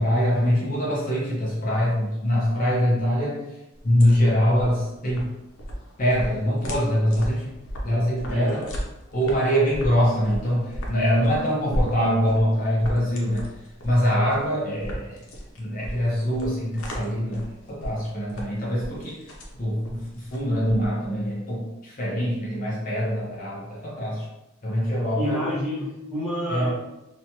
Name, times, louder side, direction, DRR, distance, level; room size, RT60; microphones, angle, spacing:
voice 1, 0.0-3.4 3.8-5.3 6.0-7.5 7.8-8.7 9.1-13.5 13.8-15.2 15.6-19.3 19.6-24.2 24.6-25.6 26.5-26.7, equal, 40° left, -6 dB, 0.6 m, -23 dB
sound 1, 3.7-21.2, equal, 85° left, 0.6 m, -36 dB
voice 2, 8.2-8.7 25.2-26.7, equal, 5° right, -9 dB, 1.0 m, -29 dB
3.0 x 2.2 x 2.7 m, 0.93 s
head